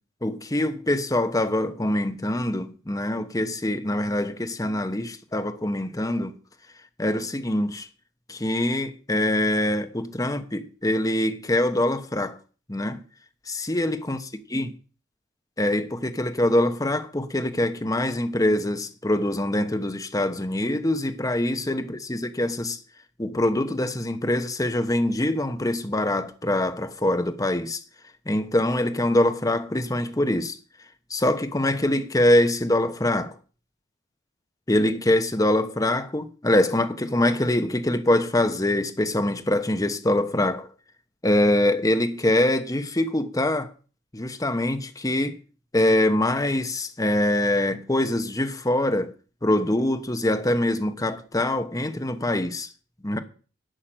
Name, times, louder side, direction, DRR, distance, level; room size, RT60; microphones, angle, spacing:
voice 1, 0.2-6.3 7.0-7.9 8.3-12.4 12.7-13.0 13.5-14.2 14.5-14.7 15.6-22.8 23.2-27.8 28.3-30.6 31.1-33.4 34.7-40.7 41.2-43.7 44.1-45.4 45.7-49.1 49.4-52.7 53.0-53.2, left 1 dB, 20° left, 1.1 m, -24 dB
11.5 x 5.9 x 8.9 m
head